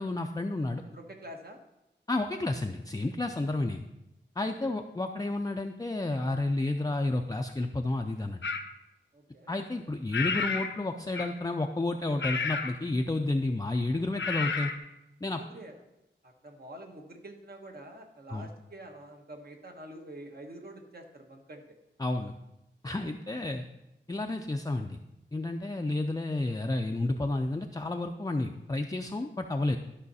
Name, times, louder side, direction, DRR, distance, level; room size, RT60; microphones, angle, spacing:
voice 1, 0.0-0.8 2.1-3.8 4.4-8.4 9.5-14.7 15.2-15.4 18.3-18.5 22.0-22.4 22.8-23.7 24.1-25.0 25.3-29.8, left 2 dB, 20° left, 3 dB, 0.4 m, -31 dB
voice 2, 0.8-1.6 4.6-4.7 9.1-9.5 15.2-15.7 16.2-21.6, right 1 dB, 55° right, 3 dB, 1.3 m, -47 dB
sound 1, 8.4-8.7 10.1-10.8 11.1-11.5 12.2-12.8 14.2-14.8, left 5 dB, 75° left, 0.7 m, -31 dB
12.0 x 5.6 x 4.1 m, 0.92 s
wide cardioid pair, 90°, 20 cm